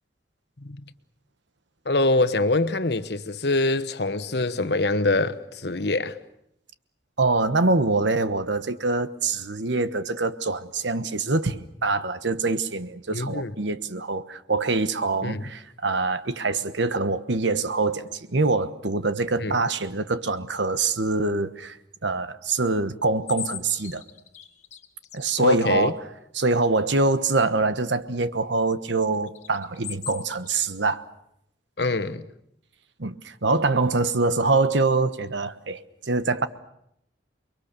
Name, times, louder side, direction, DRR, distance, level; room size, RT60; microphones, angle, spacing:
voice 1, 1.8-6.2 13.1-13.5 15.2-15.4 19.4-19.6 25.4-25.9 31.8-32.2, left 2 dB, 60° left, 1.2 m, -24 dB
voice 2, 7.2-21.8 22.0-24.0 25.1-26.0 26.3-31.0 33.0-36.5, right 3 dB, 75° right, 1.2 m, -24 dB
sound 1, 23.3-25.2 29.3-30.6, left 10 dB, 40° left, 1.6 m, -38 dB
29.0 x 22.5 x 6.8 m
head